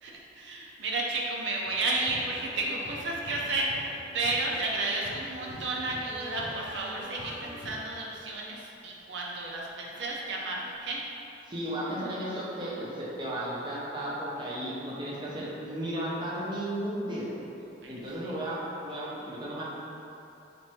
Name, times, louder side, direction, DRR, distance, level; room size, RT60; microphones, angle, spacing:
voice 1, 0.0-11.0 17.8-18.3, right 2 dB, 75° right, -3 dB, 0.5 m, -32 dB
sound 1, 1.6-7.7, equal, 70° left, 0.5 m, -44 dB
voice 2, 11.4-17.4 17.9-18.6 18.8-19.6, right 1 dB, 25° right, -7 dB, 0.5 m, -34 dB
4.2 x 2.5 x 3.1 m, 2.9 s
head